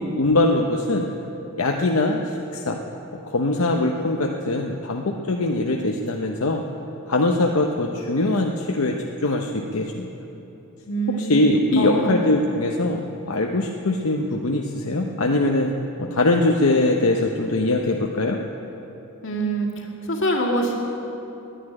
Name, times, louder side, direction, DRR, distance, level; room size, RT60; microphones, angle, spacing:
voice 1, 0.2-1.1 1.6-2.2 2.5-2.8 3.3-6.6 7.1-9.0 9.2-10.1 11.2-15.7 16.0-18.4, left 2 dB, 85° left, 1 dB, 0.8 m, -22 dB
voice 2, 10.9-11.4 11.8-12.1 19.2-20.7, right 1 dB, 65° left, -1 dB, 2.1 m, -24 dB
11.0 x 10.0 x 9.9 m, 3.0 s
head